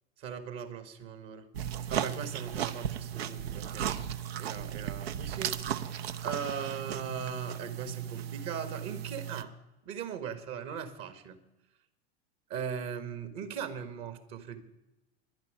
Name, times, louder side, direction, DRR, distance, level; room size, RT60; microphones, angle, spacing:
voice 1, 0.2-1.5 1.9-3.9 4.4-9.5 9.8-11.4 12.5-14.6, right 7 dB, 50° right, 10 dB, 1.9 m, -39 dB
sound 1, 1.5-9.4, right 9 dB, 70° right, 0.9 m, -36 dB
11.0 x 10.5 x 9.9 m, 0.99 s
figure-of-eight pair, 85°, 32 cm